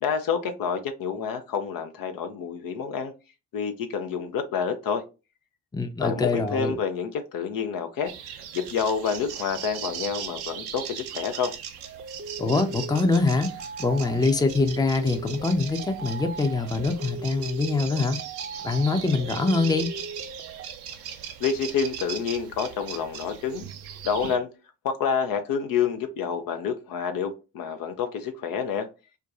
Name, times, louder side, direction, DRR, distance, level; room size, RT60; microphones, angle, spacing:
voice 1, 0.0-3.1 3.5-5.0 6.0-8.1 8.5-11.5 21.4-23.6 24.0-24.5 24.8-28.9, left 6 dB, 55° left, 0.6 m, -28 dB
voice 2, 5.7-6.8 12.4-13.5 13.8-18.2 18.6-19.9, left 3 dB, 10° left, 0.6 m, -24 dB
sound 1, 8.1-24.4, right 9 dB, 65° right, 0.6 m, -39 dB
sound 2, 11.8-20.7, right 4 dB, 35° right, 0.7 m, -39 dB
4.5 x 2.2 x 2.4 m
hypercardioid pair, 40°, 41 cm